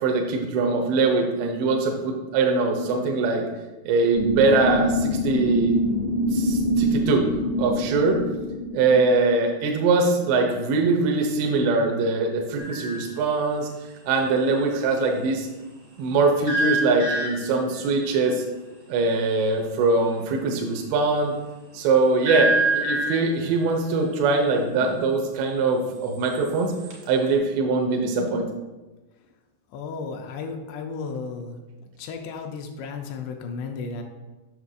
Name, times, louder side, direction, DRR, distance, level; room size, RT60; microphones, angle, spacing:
voice 1, 0.0-3.4 3.8-5.8 6.3-7.3 7.6-8.2 8.7-13.7 14.1-15.5 16.0-18.4 18.9-21.3 21.7-26.7 27.1-28.5, right 3 dB, 85° right, 2 dB, 2.8 m, -22 dB
sound 1, 4.1-9.1, equal, 55° left, 0.8 m, -25 dB
sound 2, 12.6-13.1 16.5-17.7 22.2-23.4 26.1-27.1, right 2 dB, 70° right, 1.1 m, -26 dB
voice 2, 29.7-31.6 32.0-34.0, left 4 dB, 80° left, 3 dB, 2.6 m, -34 dB
8.1 x 6.0 x 2.5 m, 1.1 s
omnidirectional pair, 5.1 m